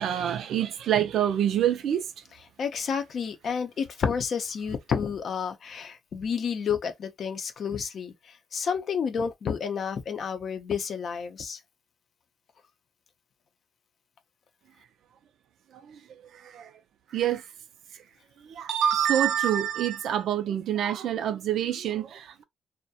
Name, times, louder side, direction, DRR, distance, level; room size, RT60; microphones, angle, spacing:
voice 1, 0.0-2.1 15.9-16.0 16.4-16.7 17.1-17.4 18.5-22.4, right 10 dB, 70° right, 0.4 m, -26 dB
voice 2, 2.6-11.6, left 6 dB, 55° left, 0.5 m, -30 dB
2.3 x 2.1 x 2.7 m
cardioid pair, 90°, 0 cm